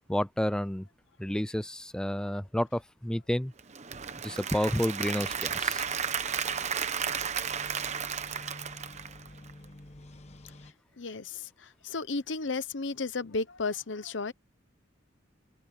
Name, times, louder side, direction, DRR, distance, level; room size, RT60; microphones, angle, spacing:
voice 1, 0.1-0.9 1.2-3.5 4.2-5.8, equal, 5° left, 0.4 m, -30 dB
Applause / Crowd, 3.6-9.7, right 7 dB, 35° right, 1.0 m, -33 dB
sound 1, 5.2-10.7, left 1 dB, 35° left, 1.2 m, -50 dB
voice 2, 11.0-14.3, left 3 dB, 70° left, 0.9 m, -34 dB
head